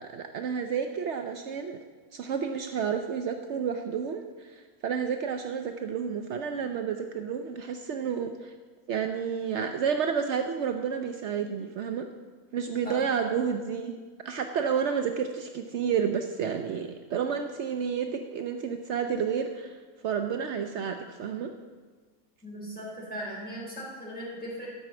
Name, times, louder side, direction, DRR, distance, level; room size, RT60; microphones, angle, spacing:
voice 1, 0.0-1.8 2.1-8.5 8.9-12.0 12.5-13.9 14.2-19.7 20.0-21.5, right 7 dB, 75° right, 6 dB, 0.6 m, -30 dB
voice 2, 22.4-24.8, equal, 5° left, -6 dB, 3.6 m, -38 dB
12.5 x 6.0 x 7.6 m, 1.5 s
omnidirectional pair, 1.8 m